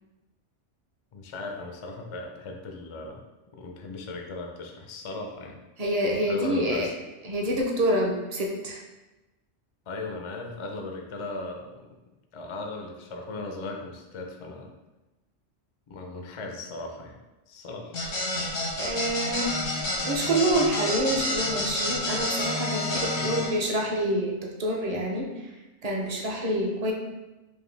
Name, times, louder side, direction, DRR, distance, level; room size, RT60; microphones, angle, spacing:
voice 1, 1.1-3.2 3.5-5.6 6.3-6.9 9.9-11.9 12.3-14.7 15.9-17.2 17.5-18.0 23.2-23.4, left 2 dB, 55° left, 2 dB, 0.3 m, -37 dB
voice 2, 5.8-6.9 7.2-8.8 18.8-19.6 20.0-25.3 25.8-26.9, right 1 dB, 45° right, -1 dB, 0.6 m, -27 dB
sound 1, 17.9-23.5, left 1 dB, 90° left, 1.4 m, -29 dB
4.8 x 2.6 x 3.2 m, 1.1 s
omnidirectional pair, 1.2 m